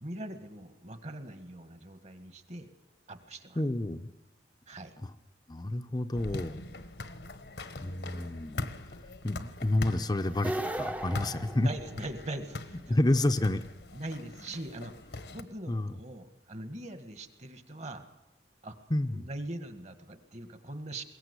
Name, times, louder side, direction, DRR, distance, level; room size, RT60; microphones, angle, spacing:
voice 1, 0.0-2.7 3.1-3.6 4.7-5.0 11.6-13.0 13.9-14.9 15.3-18.1 18.6-18.9 19.1-21.0, right 1 dB, 40° right, 9 dB, 1.7 m, -42 dB
voice 2, 3.6-4.1 5.0-5.1 5.5-6.6 7.8-9.0 9.2-11.7 12.9-13.6 15.7-16.0 18.9-19.3, left 1 dB, 25° left, 8 dB, 0.7 m, -29 dB
sound 1, 6.1-15.4, left 2 dB, 70° left, 1.2 m, -42 dB
sound 2, 10.3-12.4, right 1 dB, 10° right, 0.8 m, -36 dB
21.5 x 17.5 x 8.2 m, 1.0 s
head